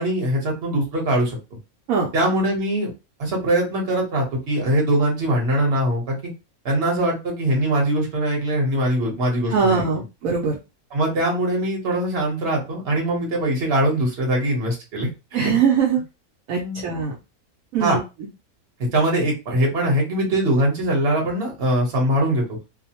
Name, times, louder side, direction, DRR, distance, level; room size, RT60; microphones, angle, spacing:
voice 1, 0.0-1.4 2.1-2.9 3.2-6.2 6.6-9.9 10.9-15.5 16.6-16.8 17.8-18.0 18.9-22.6, right 1 dB, 45° right, -1 dB, 1.2 m, -22 dB
voice 2, 9.5-10.6 15.3-16.0 16.5-17.1 17.7-18.0, right 6 dB, 70° right, -2 dB, 1.0 m, -21 dB
2.7 x 2.0 x 2.8 m, 0.27 s
omnidirectional pair, 1.6 m